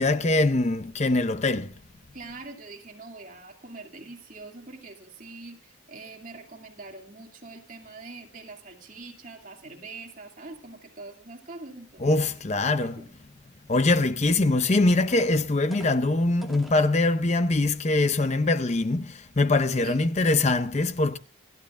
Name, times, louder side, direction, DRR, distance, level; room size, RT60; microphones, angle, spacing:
voice 1, 0.0-1.7 12.0-13.0 13.7-21.2, left 2 dB, 35° left, 0.6 m, -23 dB
voice 2, 2.1-12.4 12.8-13.1 19.8-20.1, right 3 dB, 40° right, 2.4 m, -44 dB
sound 1, 15.0-16.8 17.5-17.6 18.1-18.3, right 1 dB, ahead, 2.1 m, -47 dB
29.0 x 12.0 x 2.5 m
head